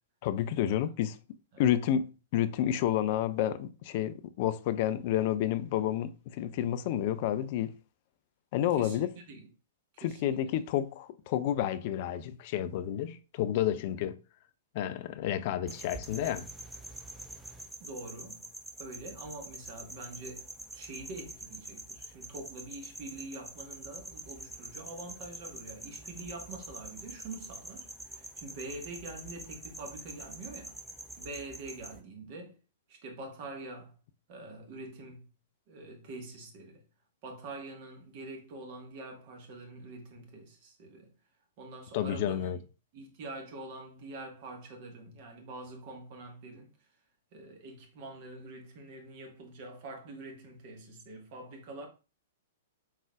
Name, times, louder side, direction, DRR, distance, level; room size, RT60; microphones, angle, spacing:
voice 1, 0.2-1.2 1.6-7.7 8.5-9.1 10.0-14.2 14.7-16.5 41.9-42.6, left 11 dB, 45° left, 0.3 m, -30 dB
voice 2, 8.7-9.5 10.0-10.5 17.8-18.5 18.8-30.8 31.2-32.6 32.9-33.9 34.3-35.3 35.7-36.8 37.2-41.1 41.6-42.6 42.9-46.7 47.3-51.9, right 2 dB, 45° right, 1.2 m, -45 dB
sound 1, 15.7-32.0, right 1 dB, 5° right, 0.6 m, -46 dB
4.8 x 3.8 x 2.3 m
figure-of-eight pair, 105°, 0 cm